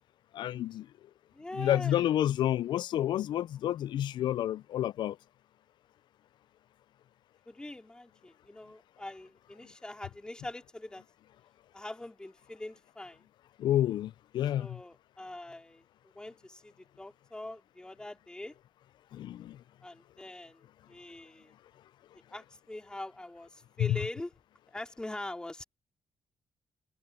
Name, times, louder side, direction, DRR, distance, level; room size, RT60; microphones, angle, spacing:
voice 1, 0.3-0.9 1.6-5.2 13.6-14.8 19.1-19.6 23.8-24.0, left 12 dB, 75° left, 0.4 m, -29 dB
voice 2, 1.3-2.2 7.5-11.0 11.7-13.3 14.6-15.9 16.1-18.6 19.8-21.5 22.1-24.3 24.7-25.6, left 1 dB, 10° left, 2.7 m, -43 dB
cardioid pair, 140°, 8 cm